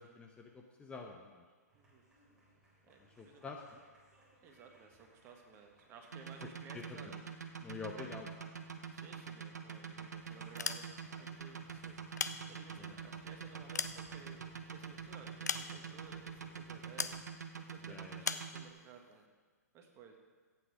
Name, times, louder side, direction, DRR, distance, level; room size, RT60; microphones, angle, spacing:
voice 1, 0.0-1.4 3.2-3.8 6.7-7.2 7.6-8.3 12.8-13.2 17.9-18.2, left 4 dB, 10° left, 2 dB, 0.9 m, -47 dB
sound 1, 1.7-17.3, right 1 dB, 10° right, 3.6 m, -65 dB
voice 2, 2.8-3.4 4.4-7.2 8.0-8.1 8.9-10.9 11.2-12.0 12.5-14.5 14.7-17.1 17.7-19.2 19.7-20.2, right 6 dB, 30° right, 3 dB, 1.7 m, -57 dB
sound 2, 6.1-18.7, right 7 dB, 75° right, 1.0 m, -45 dB
sound 3, 10.4-11.2 11.9-12.9 13.4-14.7 15.4-16.1 17.0-17.2 18.2-18.5, left 5 dB, 75° left, 0.7 m, -39 dB
14.0 x 8.8 x 5.0 m, 1.5 s
figure-of-eight pair, 115°, 9 cm